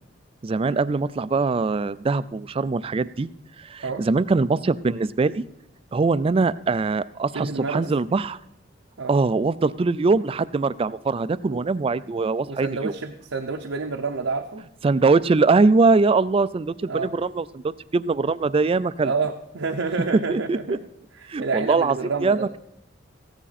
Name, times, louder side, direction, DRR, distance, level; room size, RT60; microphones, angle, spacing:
voice 1, 0.4-3.3 3.6-5.4 5.9-8.4 9.1-12.9 14.8-17.6 17.9-19.1 20.3-20.8 21.3-22.0 22.2-22.6, right 3 dB, 30° right, 16 dB, 0.3 m, -22 dB
voice 2, 7.3-7.8 9.0-9.2 11.5-11.6 12.5-14.6 16.9-17.1 19.0-20.8 21.2-22.5, right 4 dB, 80° right, 3 dB, 0.7 m, -29 dB
14.5 x 10.0 x 4.1 m, 0.79 s
head